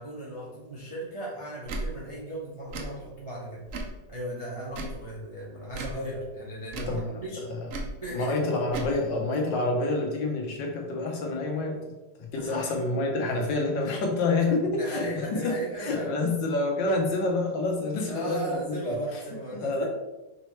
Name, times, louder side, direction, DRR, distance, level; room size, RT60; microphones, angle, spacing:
voice 1, 0.0-3.6 4.1-7.5 8.0-8.3 12.4-13.0 14.5-16.1 18.1-19.8, right 1 dB, 35° right, -6 dB, 0.5 m, -36 dB
Tick / Tick-tock, 1.6-1.9 2.7-2.9 3.7-4.0 4.7-5.0 5.7-6.0 6.7-7.0 7.7-7.9 8.7-8.9, right 2 dB, 65° right, 0.8 m, -35 dB
voice 2, 8.1-11.8 12.2-18.9 19.5-19.8, left 2 dB, 75° left, 1 dB, 1.5 m, -28 dB
5.2 x 3.1 x 3.1 m, 1.0 s
omnidirectional pair, 2.0 m